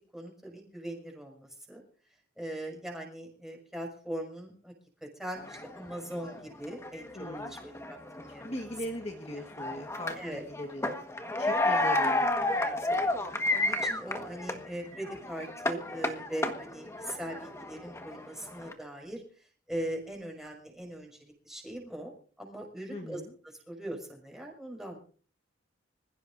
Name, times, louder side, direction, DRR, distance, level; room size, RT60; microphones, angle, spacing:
voice 1, 0.1-1.8 2.4-4.7 5.0-7.1 7.5-7.6 7.9-8.6 10.2-10.4 11.2-11.5 12.6-13.1 13.5-19.2 19.7-22.1 22.4-23.2 23.7-25.0, right 1 dB, ahead, 0 dB, 5.9 m, -40 dB
sound 1, 5.4-14.7 14.9-18.7, left 2 dB, 15° left, 1.5 m, -31 dB
voice 2, 7.1-7.6 8.4-10.9 11.4-12.3 22.9-23.3, left 1 dB, 30° left, 2 dB, 1.5 m, -39 dB
26.0 x 15.5 x 2.6 m, 0.43 s
head